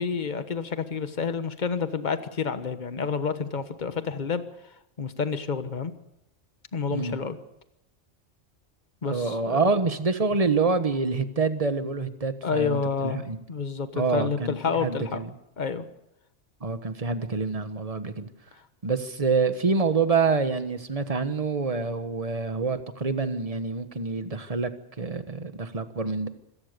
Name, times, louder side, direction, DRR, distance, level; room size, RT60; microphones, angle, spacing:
voice 1, 0.0-4.4 5.0-5.9 6.7-7.4 9.0-9.7 12.4-15.2 15.6-15.9, left 5 dB, 40° left, 10 dB, 1.4 m, -29 dB
voice 2, 6.9-7.2 9.0-13.4 13.9-15.3 16.6-18.3 18.8-24.7 25.0-26.3, right 4 dB, 30° right, 10 dB, 1.4 m, -26 dB
26.0 x 17.5 x 6.8 m, 0.85 s
omnidirectional pair, 1.3 m